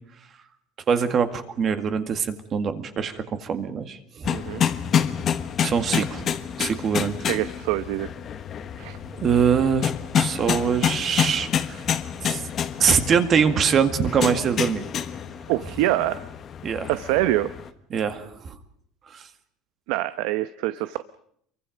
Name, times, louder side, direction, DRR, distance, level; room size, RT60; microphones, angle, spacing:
voice 1, 0.9-4.3 5.6-6.3 6.6-7.2 9.2-9.9 10.2-11.8 12.2-12.4 12.8-14.8 16.6-16.9 17.9-18.6 19.1-19.3, right 7 dB, 30° right, 9 dB, 2.0 m, -23 dB
sound 1, 4.2-17.7, left 8 dB, 30° left, 1.3 m, -28 dB
voice 2, 4.3-4.6 7.3-8.1 8.8-9.0 15.5-16.3 16.9-17.5 19.9-21.0, right 16 dB, 70° right, 12 dB, 0.9 m, -25 dB
28.5 x 23.5 x 5.2 m, 0.67 s
cardioid pair, 170°, 0 cm